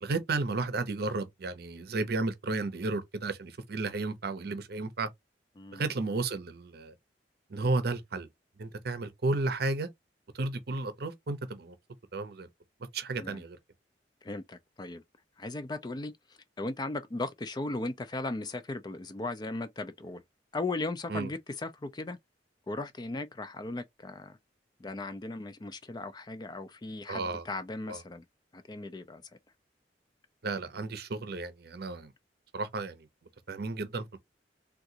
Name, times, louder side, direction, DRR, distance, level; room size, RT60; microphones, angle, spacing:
voice 1, 0.0-5.1 5.7-6.9 7.5-8.3 8.6-9.9 10.3-11.7 12.1-12.5 12.9-13.6 21.1-21.3 27.1-27.5 27.9-28.0 30.4-32.1 32.5-33.1 33.5-34.2, right 3 dB, 60° right, 0.6 m, -33 dB
voice 2, 5.6-5.9 13.2-13.4 14.2-15.0 15.4-16.1 16.6-20.2 20.5-22.2 22.7-24.4 24.8-28.2 28.5-29.2, left 2 dB, 25° left, 0.4 m, -37 dB
3.7 x 2.3 x 2.8 m
head